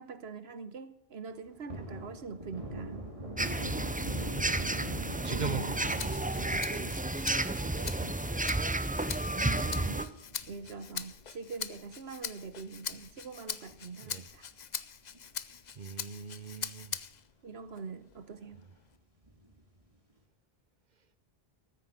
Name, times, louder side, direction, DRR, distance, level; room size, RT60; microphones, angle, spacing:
voice 1, 0.0-3.0 5.3-5.7 6.3-7.0 7.8-8.2 9.3-10.2 10.5-14.5 17.4-18.7, right 5 dB, 90° right, 1.3 m, -44 dB
Thunder, 1.3-12.0 12.4-12.5 12.8-14.3 14.6-14.8 15.1-15.9 16.3-16.4 16.8-16.9 19.2-19.8, right 1 dB, 35° right, 2.6 m, -44 dB
sound 1, 3.4-10.0, right 2 dB, 10° right, 0.5 m, -32 dB
voice 2, 4.1-4.8 5.2-6.0 7.6-7.9 8.2-8.4 14.0-14.3 15.7-17.0, right 6 dB, 50° right, 0.9 m, -41 dB
Rattle (instrument), 5.9-17.3 17.8-19.0, left 7 dB, 50° left, 0.7 m, -43 dB
14.0 x 9.4 x 8.0 m
omnidirectional pair, 1.0 m